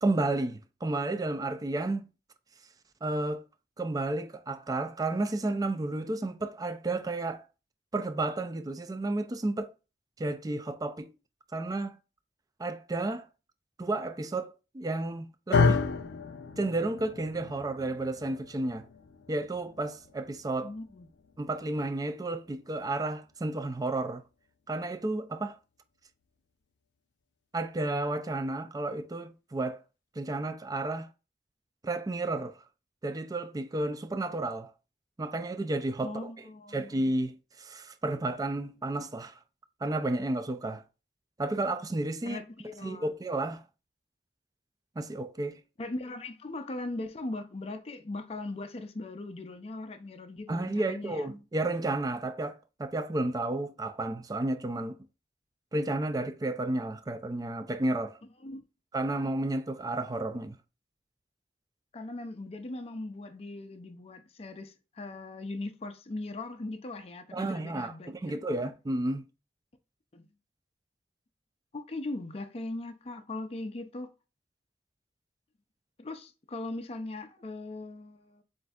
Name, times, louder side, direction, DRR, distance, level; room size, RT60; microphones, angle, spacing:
voice 1, 0.0-2.1 3.0-3.4 3.8-7.5 7.9-9.7 10.2-11.1 11.5-12.0 12.6-13.3 13.8-15.8 16.6-18.9 19.3-20.7 21.4-24.2 24.7-25.6 27.5-29.8 30.2-31.1 31.8-32.6 33.0-34.7 35.2-36.5 36.7-39.4 39.8-40.8 41.4-42.4 42.8-43.6 45.0-45.6 50.5-55.0 55.7-58.2 58.9-60.6 67.3-69.2, right 2 dB, 20° right, 0.4 m, -32 dB
sound 1, 15.5-23.8, left 4 dB, 90° left, 0.5 m, -32 dB
voice 2, 20.6-21.1 36.0-37.0 42.2-43.1 45.8-51.3 58.4-58.6 61.9-68.2 68.4-68.5 70.1-70.3 71.7-74.1 76.0-78.4, left 2 dB, 35° left, 0.5 m, -39 dB
7.4 x 2.6 x 2.4 m
head